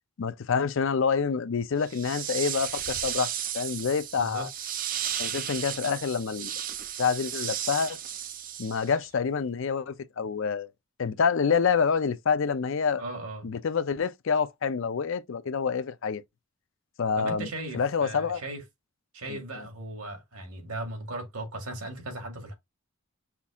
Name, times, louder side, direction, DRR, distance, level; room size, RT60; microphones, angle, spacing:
voice 1, 0.2-4.5 5.2-6.5 7.0-8.0 8.6-10.7 11.0-13.0 13.4-16.2 17.0-17.5 17.7-18.4 19.3-19.4, left 6 dB, 60° left, 0.4 m, -27 dB
sound 1, 1.8-9.1, right 10 dB, 40° right, 0.4 m, -34 dB
voice 2, 4.2-4.5 13.0-13.5 17.2-18.6 19.1-22.5, right 2 dB, 85° right, 1.9 m, -37 dB
5.8 x 2.4 x 3.5 m
head